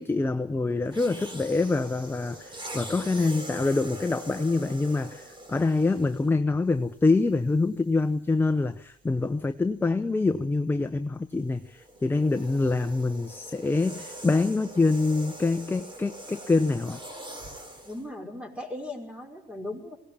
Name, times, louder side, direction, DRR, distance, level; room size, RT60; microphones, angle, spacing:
voice 1, 0.0-17.0, left 3 dB, 10° left, 8 dB, 0.9 m, -25 dB
sound 1, 0.8-6.4 7.2-7.4 11.4-18.0, right 1 dB, 30° right, 3.8 m, -43 dB
voice 2, 17.8-20.0, left 1 dB, 5° right, 2 dB, 5.4 m, -37 dB
21.5 x 18.0 x 8.7 m, 0.78 s
cardioid pair, 110°, 17 cm